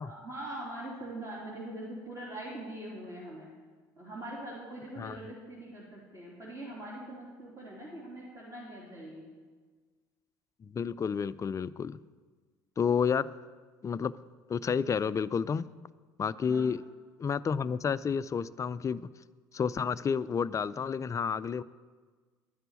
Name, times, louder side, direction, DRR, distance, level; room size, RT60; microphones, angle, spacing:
voice 1, 0.0-3.5 4.0-9.3 16.3-16.7, right 1 dB, 30° right, -5 dB, 3.2 m, -42 dB
voice 2, 10.6-12.0 12.8-13.3 13.8-14.1 14.5-15.7 16.2-16.8 17.2-19.1 19.5-21.6, left 6 dB, 30° left, 17 dB, 0.4 m, -30 dB
11.5 x 6.7 x 8.3 m, 1.4 s
hypercardioid pair, 65°, 11 cm